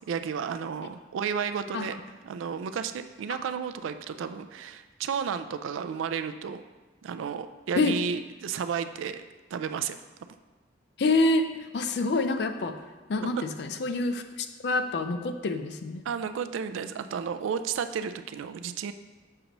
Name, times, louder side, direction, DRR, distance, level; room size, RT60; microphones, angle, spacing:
voice 1, 0.1-2.0 2.2-6.6 7.0-9.2 9.5-10.0 13.2-13.3 16.0-18.9, right 7 dB, 90° right, 10 dB, 0.3 m, -32 dB
voice 2, 11.0-12.8 13.1-16.0, left 2 dB, 60° left, 8 dB, 0.4 m, -27 dB
6.6 x 3.0 x 5.1 m, 1.2 s
head